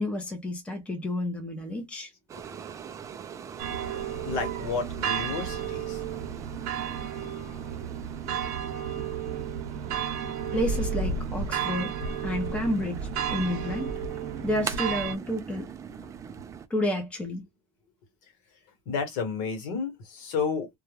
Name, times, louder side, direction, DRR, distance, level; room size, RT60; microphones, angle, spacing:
voice 1, 0.0-2.1 10.5-11.9 12.2-13.9 14.4-15.7 16.7-17.4, left 1 dB, 10° left, 0.7 m, -30 dB
sound 1, 2.3-16.7, right 7 dB, 20° right, 0.3 m, -42 dB
sound 2, 3.6-15.1, right 7 dB, 65° right, 0.8 m, -32 dB
voice 2, 4.2-6.0 18.8-20.7, left 5 dB, 65° left, 1.2 m, -31 dB
2.3 x 2.2 x 3.2 m
cardioid pair, 150°, 15 cm